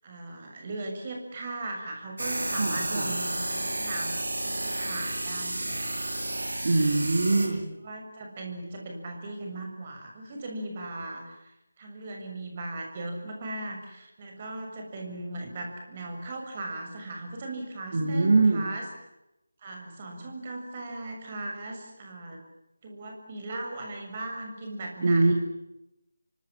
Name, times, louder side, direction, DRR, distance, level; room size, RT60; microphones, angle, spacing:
voice 1, 0.0-4.2 4.4-6.2 7.1-7.6 7.8-11.4 11.8-18.9 19.6-22.4 22.8-25.3, right 2 dB, 30° right, 2 dB, 6.9 m, -38 dB
sound 1, 2.2-7.5, right 1 dB, 60° right, 7.3 m, -32 dB
voice 2, 2.6-3.1 6.6-7.7 17.9-18.7 25.0-25.3, right 3 dB, 45° right, 2 dB, 4.1 m, -23 dB
29.0 x 25.0 x 7.3 m, 0.90 s
figure-of-eight pair, 155°, 0 cm